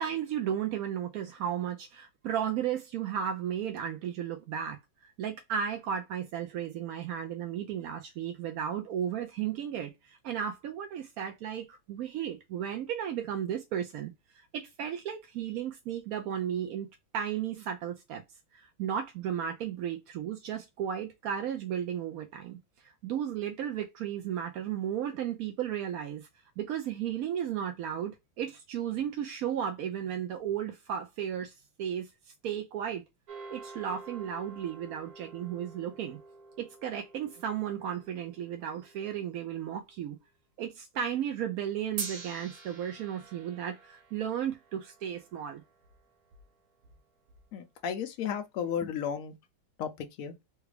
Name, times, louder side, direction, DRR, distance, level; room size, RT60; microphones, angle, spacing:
voice 1, 0.0-16.9 17.1-18.2 18.5-22.6 22.8-26.3 26.6-32.1 32.4-33.0 33.5-36.2 36.6-40.2 40.6-45.6, right 9 dB, 75° right, 0.8 m, -34 dB
sound 1, 33.3-39.7 42.0-46.4, right 4 dB, 60° right, 1.4 m, -47 dB
voice 2, 47.5-49.3 49.8-50.3, left 8 dB, 80° left, 0.7 m, -34 dB
3.3 x 2.3 x 3.2 m
omnidirectional pair, 2.0 m